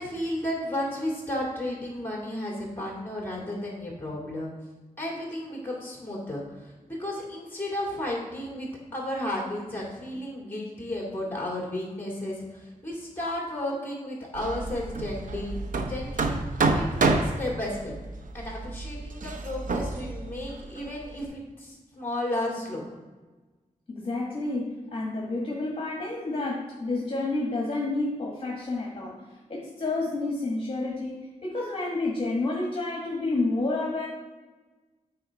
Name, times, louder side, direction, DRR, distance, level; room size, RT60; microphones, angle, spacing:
voice 1, 0.0-4.5 5.0-15.6 15.8-16.4 16.7-17.9 18.3-22.9, left 1 dB, 15° left, -3 dB, 2.6 m, -33 dB
Hammer, 14.3-21.2, right 3 dB, 80° right, 0.7 m, -29 dB
voice 2, 23.9-29.2 29.5-34.1, left 2 dB, 40° left, -3 dB, 1.6 m, -30 dB
9.0 x 4.3 x 4.7 m, 1.2 s
wide cardioid pair, 130°, 14 cm